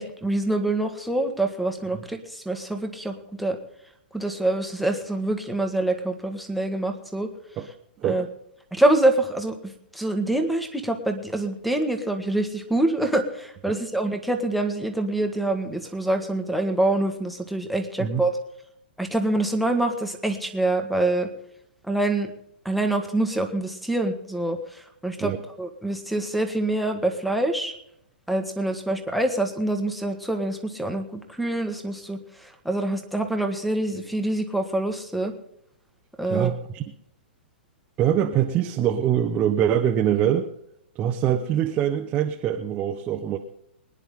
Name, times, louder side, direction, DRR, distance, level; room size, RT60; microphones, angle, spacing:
voice 1, 0.0-3.6 4.1-7.3 8.0-8.3 8.7-18.4 19.0-21.3 21.9-22.3 22.6-25.3 25.6-27.7 28.3-35.3 36.2-36.5, right 2 dB, ahead, 7 dB, 1.5 m, -25 dB
voice 2, 36.3-36.8 38.0-40.5 40.9-43.4, right 10 dB, 25° right, 3 dB, 1.0 m, -24 dB
23.5 x 10.0 x 3.7 m, 0.74 s
hypercardioid pair, 140°, 6 cm